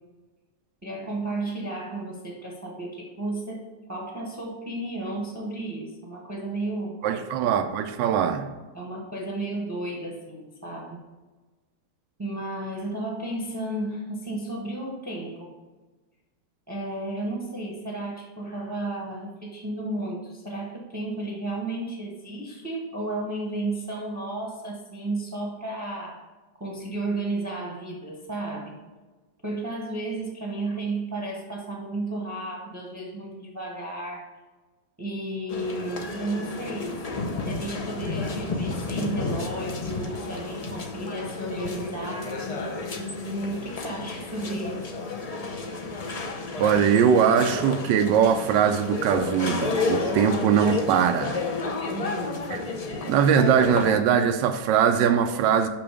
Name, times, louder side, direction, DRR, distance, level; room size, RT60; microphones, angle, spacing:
voice 1, 0.8-7.2 8.7-11.0 12.2-15.5 16.7-26.2 26.6-28.7 29.4-34.3 35.0-37.0 37.5-42.4 43.2-44.9 51.9-52.5, right 2 dB, 10° right, -2 dB, 0.9 m, -33 dB
voice 2, 7.0-8.5 46.6-51.4 52.5-52.6 53.1-55.7, right 7 dB, 90° right, 7 dB, 1.3 m, -21 dB
sound 1, 35.5-53.9, left 3 dB, 50° left, 0.4 m, -31 dB
6.0 x 5.9 x 5.0 m, 1.3 s
omnidirectional pair, 1.9 m